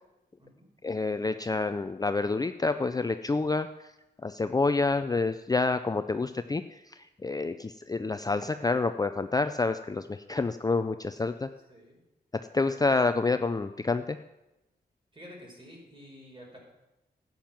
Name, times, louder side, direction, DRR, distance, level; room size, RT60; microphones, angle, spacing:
voice 1, 0.8-3.7 4.2-11.5 12.5-14.2, left 3 dB, 20° left, 9 dB, 0.5 m, -28 dB
voice 2, 11.7-12.0 15.1-16.6, equal, 30° right, -1 dB, 5.2 m, -49 dB
11.5 x 9.4 x 7.3 m, 0.96 s
wide cardioid pair, 90°, 17 cm